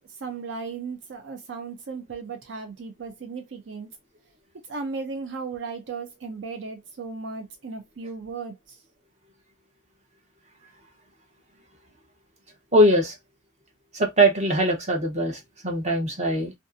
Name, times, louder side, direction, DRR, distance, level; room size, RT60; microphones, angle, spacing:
voice 1, 0.2-3.9 4.7-8.8, right 4 dB, 70° right, 0.5 m, -36 dB
voice 2, 12.7-13.1 13.9-16.5, right 1 dB, 35° right, 0.8 m, -21 dB
2.5 x 2.4 x 2.5 m
head